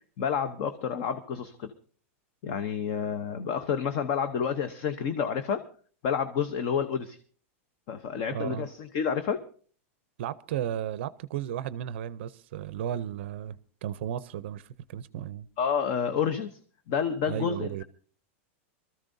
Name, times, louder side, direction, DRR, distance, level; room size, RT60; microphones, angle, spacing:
voice 1, 0.2-1.7 2.4-5.6 6.0-7.2 7.9-9.4 15.6-16.6 16.9-17.8, left 7 dB, 35° left, 0.8 m, -29 dB
voice 2, 8.3-8.7 10.2-15.5 17.3-17.8, right 10 dB, 55° right, 0.5 m, -34 dB
24.0 x 13.5 x 2.7 m
supercardioid pair, 180°, 7 cm